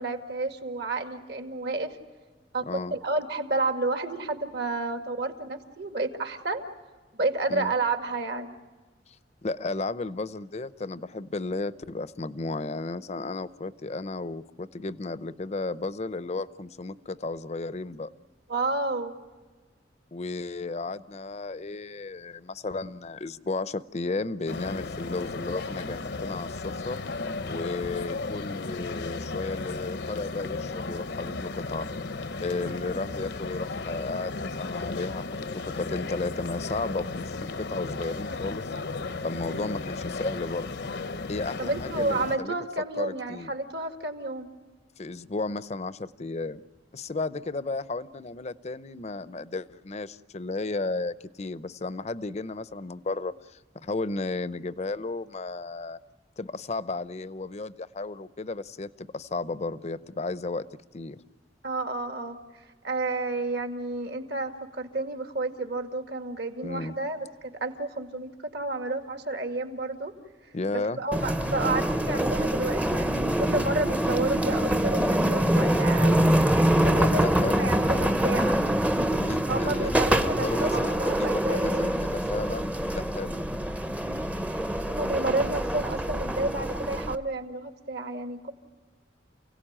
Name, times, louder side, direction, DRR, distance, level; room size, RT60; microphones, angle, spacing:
voice 1, 0.0-2.0 2.5-6.6 7.1-8.6 18.5-19.2 27.8-27.9 32.6-32.8 39.4-39.7 41.6-44.5 61.6-62.4 62.8-67.3 67.6-70.1 71.0-76.2 76.7-78.6 79.5-82.0 84.0-84.3 84.9-88.5, right 2 dB, 60° right, 6 dB, 2.1 m, -30 dB
voice 2, 9.4-18.1 20.1-27.0 27.5-31.9 32.4-38.7 39.2-40.8 41.3-42.5 43.0-43.5 45.0-46.6 46.9-56.0 56.4-60.6 60.9-61.2 66.6-66.9 70.5-71.0 77.0-77.7 79.1-80.0 80.4-83.5, left 3 dB, 35° left, 16 dB, 0.6 m, -34 dB
sound 1, 24.5-42.4, left 3 dB, 65° left, 0.8 m, -35 dB
sound 2, 71.1-87.2, right 1 dB, 10° right, 0.7 m, -25 dB
29.0 x 17.5 x 8.8 m, 1.4 s
head